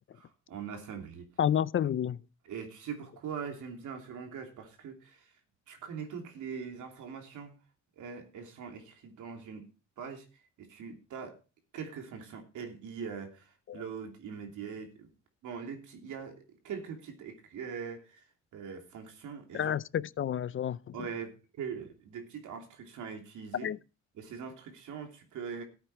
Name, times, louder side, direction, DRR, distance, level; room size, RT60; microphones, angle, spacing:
voice 1, 0.1-1.3 2.4-5.3 5.7-7.5 8.0-9.6 10.0-10.2 10.6-11.4 11.7-15.1 15.4-18.2 18.5-19.7 20.9-23.7 24.2-25.6, right 6 dB, 80° right, 3.0 m, -42 dB
voice 2, 1.4-2.2 13.7-13.8 19.5-20.9 23.5-23.8, left 9 dB, 45° left, 0.5 m, -30 dB
13.5 x 8.8 x 4.4 m
cardioid pair, 90°, 30 cm